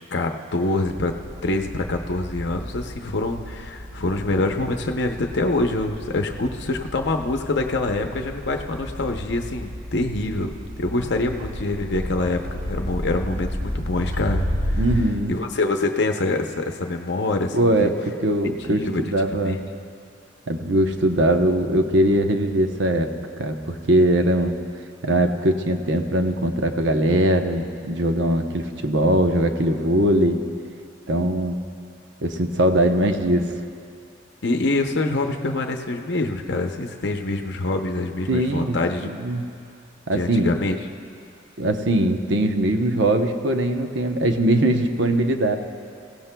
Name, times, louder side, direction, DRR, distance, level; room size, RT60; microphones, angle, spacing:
voice 1, 0.1-1.1 1.4-14.4 14.7-14.8 15.3-17.9 18.7-19.0 19.3-19.6 34.4-39.1 40.1-40.8, left 2 dB, 60° left, 4 dB, 0.7 m, -25 dB
sound 1, 0.9-15.0, equal, 45° right, 1.8 m, -32 dB
voice 2, 14.7-15.4 17.5-17.9 18.2-19.6 20.5-23.1 23.4-24.5 25.0-30.4 31.1-31.5 32.2-33.5 38.3-39.5 40.1-40.5 41.6-45.6, right 1 dB, 65° right, 5 dB, 0.8 m, -21 dB
22.5 x 16.0 x 2.3 m, 2.4 s
head